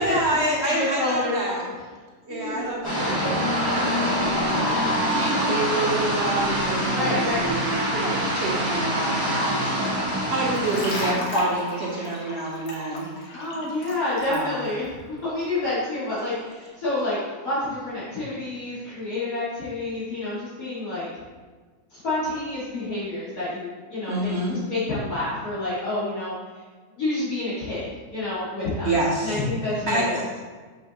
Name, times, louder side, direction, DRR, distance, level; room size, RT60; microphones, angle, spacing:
voice 1, 0.0-1.6 2.2-13.1 13.5-13.7 14.3-14.6 24.1-24.6 28.8-29.4 29.9-30.1, right 2 dB, 50° right, -4 dB, 1.0 m, -28 dB
voice 2, 0.6-1.6 2.3-2.6 6.9-7.4 13.3-17.2 17.4-21.1 21.9-24.3 24.7-26.3 27.0-27.9 28.1-28.9 29.2-30.2, left 2 dB, 65° left, -11 dB, 2.2 m, -28 dB
sound 1, 2.4-9.5, right 2 dB, 80° right, 1.2 m, -34 dB
sound 2, 2.8-11.1, equal, 15° left, 1.9 m, -25 dB
sound 3, 10.5-14.4, left 1 dB, 45° left, 1.3 m, -32 dB
6.6 x 5.6 x 2.8 m, 1.4 s
omnidirectional pair, 1.6 m